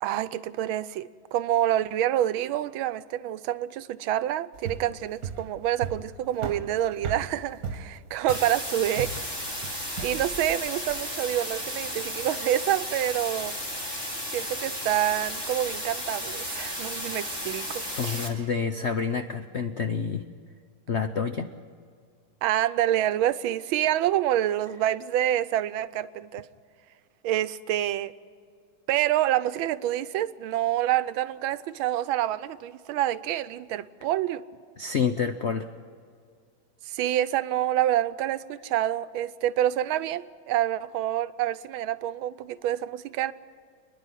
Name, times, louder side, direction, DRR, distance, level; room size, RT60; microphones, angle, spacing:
voice 1, 0.0-9.1 10.0-13.5 14.3-18.3 22.4-26.5 27.2-28.1 28.9-34.4 36.8-43.3, right 12 dB, 90° right, 1.5 m, -27 dB
sound 1, 4.5-11.1, right 6 dB, 50° right, 1.6 m, -37 dB
sound 2, 8.3-18.3, equal, 10° left, 2.4 m, -34 dB
voice 2, 18.0-20.2 20.9-21.5 34.8-35.7, left 6 dB, 70° left, 0.6 m, -28 dB
28.0 x 10.5 x 9.8 m
omnidirectional pair, 2.2 m